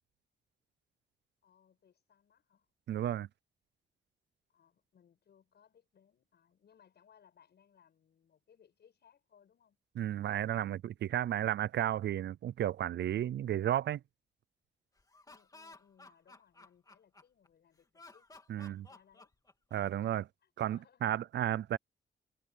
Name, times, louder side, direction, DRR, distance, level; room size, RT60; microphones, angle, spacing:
voice 1, 1.4-2.7 4.5-9.8 15.2-19.3 20.0-21.2, left 8 dB, 65° left, 7.6 m, -67 dB
voice 2, 2.9-3.3 10.0-14.0 18.5-18.9 19.7-20.2 20.6-21.8, right 11 dB, 70° right, 0.4 m, -33 dB
Laughter, 15.0-17.5 17.9-20.0, left 3 dB, 20° left, 3.0 m, -56 dB
wide cardioid pair, 150°, 18 cm